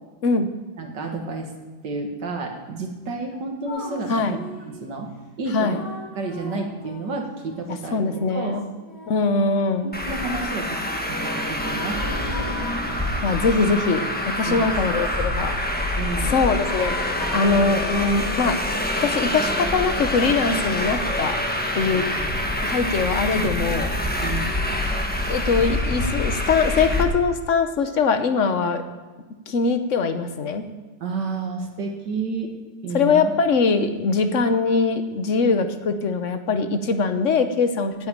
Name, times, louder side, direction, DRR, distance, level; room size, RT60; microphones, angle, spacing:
voice 1, 0.8-1.5 1.8-5.1 5.4-5.8 6.2-8.0 8.3-8.7 9.8-12.6 14.5-14.7 16.0-16.4 21.9-22.1 24.2-24.7 31.0-32.5 32.8-33.3 34.2-34.3, right 3 dB, 75° right, 3 dB, 2.2 m, -31 dB
sound 1, 3.7-4.8 5.6-9.9 11.0-12.8 13.3-15.6 16.5-18.3, left 1 dB, 35° left, 3.8 m, -40 dB
voice 2, 7.9-8.6 9.1-9.9 13.2-15.6 16.3-16.9 17.3-21.4 21.7-22.0 22.6-23.9 25.3-28.8 29.5-30.6 32.9-37.9, left 4 dB, 50° left, 8 dB, 1.2 m, -22 dB
Traffic noise roadway noise, 9.9-27.0, left 1 dB, 5° left, 1.1 m, -26 dB
9.3 x 9.1 x 8.8 m, 1.4 s
omnidirectional pair, 1.9 m